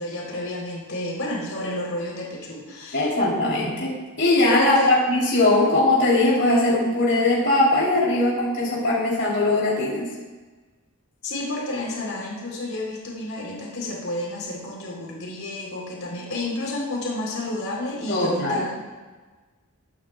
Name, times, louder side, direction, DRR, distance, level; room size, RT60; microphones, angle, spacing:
voice 1, 0.0-3.2 4.6-4.9 11.2-18.8, left 1 dB, 70° left, -3 dB, 3.9 m, -31 dB
voice 2, 2.9-10.1 18.1-18.6, left 2 dB, 50° left, -6 dB, 3.6 m, -20 dB
22.0 x 9.9 x 2.4 m, 1.3 s
head